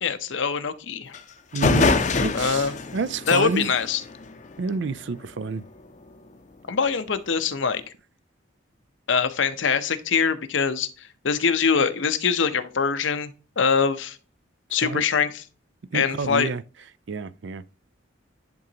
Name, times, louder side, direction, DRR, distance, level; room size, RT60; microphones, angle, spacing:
voice 1, 0.0-1.2 2.3-2.7 3.3-4.0 6.7-7.8 9.1-10.9 11.2-13.3 13.6-14.2 14.7-15.4 15.9-16.5, left 6 dB, 70° left, 0.7 m, -23 dB
sound 1, 1.1-1.2 1.5-5.0, left 3 dB, 40° left, 0.6 m, -25 dB
voice 2, 1.5-1.9 2.2-3.7 4.6-5.6 14.8-15.0 15.9-16.6 17.1-17.6, right 4 dB, 65° right, 0.4 m, -29 dB
10.5 x 3.8 x 2.8 m
head